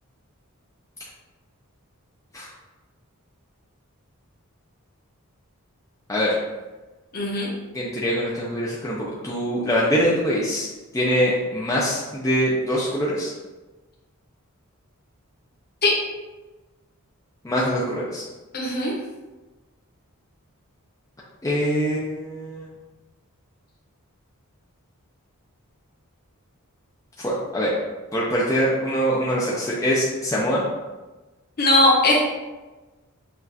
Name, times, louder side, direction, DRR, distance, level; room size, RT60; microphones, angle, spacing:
voice 1, 7.1-7.5 15.8-15.9 18.5-18.9 31.6-32.2, left 2 dB, 45° left, -4 dB, 1.0 m, -19 dB
voice 2, 7.7-13.3 17.4-18.2 21.4-22.7 27.2-27.7 28.1-30.6, equal, 15° left, -5 dB, 0.5 m, -23 dB
5.9 x 2.4 x 2.7 m, 1.2 s
head